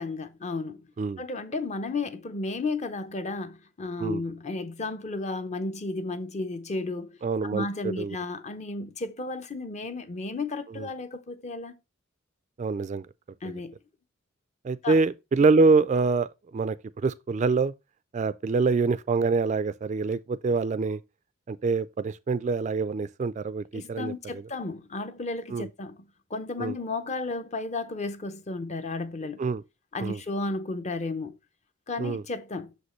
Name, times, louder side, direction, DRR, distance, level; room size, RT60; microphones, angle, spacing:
voice 1, 0.0-0.9 1.2-7.2 7.5-11.7 13.4-13.8 14.8-15.0 23.7-26.0 26.3-29.4 29.9-31.4 31.9-32.7, left 3 dB, 35° left, 0.6 m, -33 dB
voice 2, 7.2-8.2 10.8-10.9 12.6-13.1 13.4-13.6 14.6-16.3 16.5-17.7 18.1-21.0 21.5-24.4 25.5-25.7 26.6-26.7 29.4-29.6 30.0-30.2 32.0-32.2, right 4 dB, 35° right, 0.3 m, -25 dB
6.4 x 5.2 x 3.0 m
head